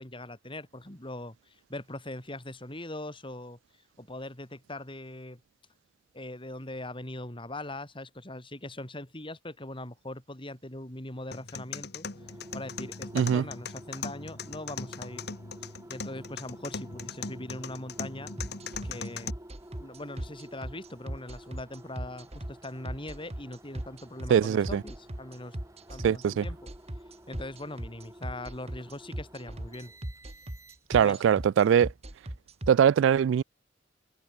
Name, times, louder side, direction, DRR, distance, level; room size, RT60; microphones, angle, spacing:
voice 1, 0.0-3.6 4.0-5.4 6.1-12.1 12.5-15.3 15.9-18.3 18.8-19.4 19.8-25.6 25.9-26.6 27.3-29.9 30.9-31.2, left 1 dB, 30° left, 4.4 m, -41 dB
sound 1, 11.3-19.3, left 5 dB, 60° left, 2.0 m, -40 dB
sound 2, 12.1-31.1, right 1 dB, 15° right, 7.2 m, -51 dB
sound 3, 18.4-32.7, right 1 dB, 35° right, 2.1 m, -37 dB
voice 2, 24.3-24.8 26.0-26.4 30.9-31.9 32.7-33.4, right 8 dB, 85° right, 0.3 m, -22 dB
head